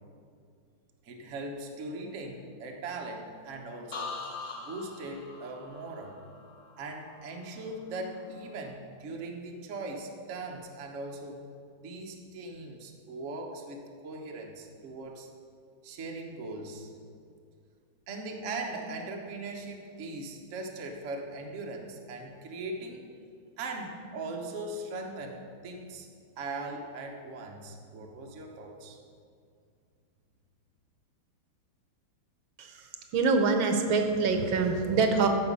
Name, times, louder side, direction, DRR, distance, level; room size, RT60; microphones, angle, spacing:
voice 1, 1.0-4.1 4.7-6.2 6.8-11.4 11.8-15.3 15.8-16.9 18.1-23.1 23.6-26.1 26.4-29.0, right 2 dB, 45° right, 2 dB, 1.1 m, -39 dB
sound 1, 3.9-7.7 8.1-8.6, left 4 dB, 50° left, 0.5 m, -43 dB
voice 2, 32.6-35.3, right 4 dB, 75° right, 5 dB, 1.6 m, -25 dB
14.5 x 5.0 x 5.4 m, 2.3 s
omnidirectional pair, 2.2 m